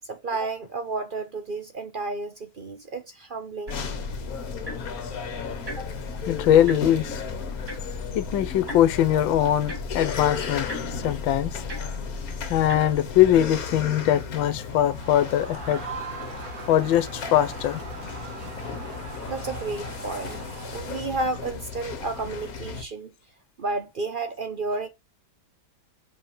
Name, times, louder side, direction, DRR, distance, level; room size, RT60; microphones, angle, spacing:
voice 1, 0.1-3.8 5.8-5.9 19.3-20.4 20.6-23.1 23.6-24.9, right 3 dB, 75° right, 0.4 m, -31 dB
sound 1, 3.7-22.8, left 5 dB, 50° left, 1.6 m, -35 dB
sound 2, 3.7-13.6, left 2 dB, 30° right, 2.8 m, -37 dB
voice 2, 6.3-7.2 8.1-11.8 12.5-15.8 16.7-17.8, left 11 dB, 75° left, 1.6 m, -22 dB
Crowd, 14.6-21.4, right 4 dB, 60° right, 3.2 m, -40 dB
6.5 x 5.7 x 7.0 m
omnidirectional pair, 2.2 m